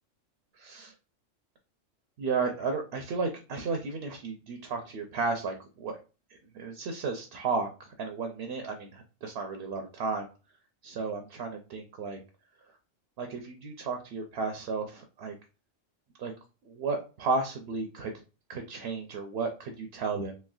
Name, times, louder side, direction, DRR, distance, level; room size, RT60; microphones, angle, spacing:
voice 1, 0.5-0.9 2.2-6.0 6.3-10.3 10.8-12.2 13.2-15.3 16.2-16.3 16.7-18.1 18.5-20.4, right 4 dB, 60° right, 4 dB, 0.7 m, -33 dB
3.2 x 3.0 x 2.3 m, 0.33 s
omnidirectional pair, 1.3 m